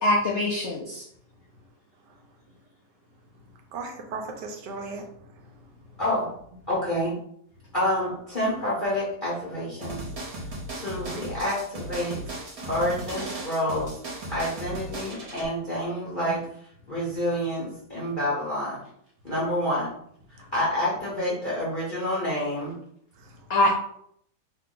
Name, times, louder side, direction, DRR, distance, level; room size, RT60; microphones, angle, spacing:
voice 1, 0.0-1.0 23.5-23.7, left 1 dB, 80° left, -3 dB, 0.6 m, -23 dB
voice 2, 3.7-5.1 16.2-16.3 23.2-23.3 23.6-23.7, right 4 dB, 75° right, 3 dB, 1.2 m, -36 dB
voice 3, 6.7-7.1 7.7-10.0 10.7-12.2 12.7-14.0 14.3-16.4 16.9-18.8 19.2-19.9 20.5-22.7, left 1 dB, 40° left, -7 dB, 0.8 m, -28 dB
sound 1, 9.8-15.4, right 2 dB, 55° right, 1.4 m, -36 dB
3.4 x 2.2 x 3.7 m, 0.68 s
omnidirectional pair, 1.9 m